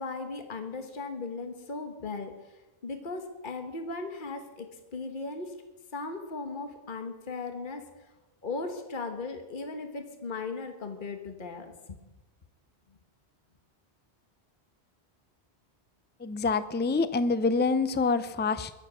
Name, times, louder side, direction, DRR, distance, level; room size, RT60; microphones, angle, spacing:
voice 1, 0.0-5.6 5.9-7.8 8.4-12.0, left 3 dB, 50° left, 5 dB, 1.5 m, -37 dB
voice 2, 16.2-18.7, left 4 dB, 15° left, 13 dB, 0.4 m, -26 dB
22.0 x 7.8 x 6.3 m, 1.0 s
omnidirectional pair, 1.1 m